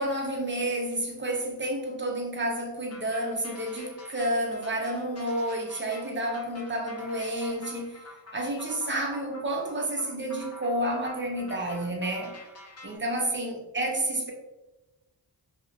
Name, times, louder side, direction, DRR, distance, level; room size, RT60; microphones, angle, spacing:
voice 1, 0.0-8.0 8.3-12.3 12.8-14.3, right 1 dB, 30° right, 0 dB, 0.5 m, -30 dB
sound 1, 2.9-13.0, left 1 dB, 35° left, 0.7 m, -47 dB
2.6 x 2.0 x 2.3 m, 1.0 s
cardioid pair, 60°, 43 cm